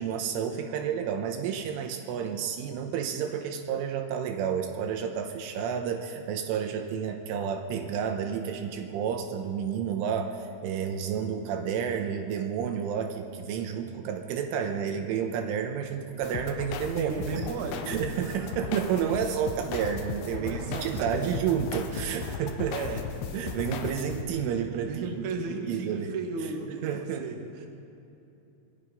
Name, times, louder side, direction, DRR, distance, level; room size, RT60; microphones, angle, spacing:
voice 1, 0.0-17.4 17.9-22.8 23.3-26.2 26.8-27.3, right 8 dB, 80° right, 5 dB, 3.5 m, -30 dB
sound 1, 16.2-24.2, left 6 dB, 75° left, 3.4 m, -37 dB
voice 2, 17.0-17.9 20.3-21.4 22.7-23.0 24.9-27.7, right 4 dB, 50° right, 1 dB, 2.5 m, -35 dB
25.5 x 20.0 x 5.5 m, 2.9 s
omnidirectional pair, 5.9 m